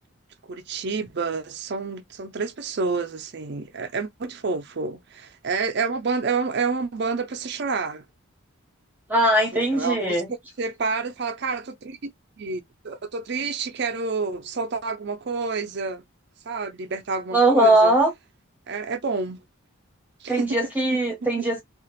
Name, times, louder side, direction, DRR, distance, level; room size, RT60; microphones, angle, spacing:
voice 1, 0.5-8.0 9.5-10.2 10.6-12.1 12.4-16.0 16.5-17.9 18.7-19.4 20.2-20.6 20.9-21.0 21.4-21.5, right 4 dB, 55° right, 0.5 m, -29 dB
voice 2, 9.1-10.3 17.3-18.1 20.3-21.6, right 1 dB, 10° right, 0.9 m, -20 dB
2.8 x 2.4 x 2.9 m
head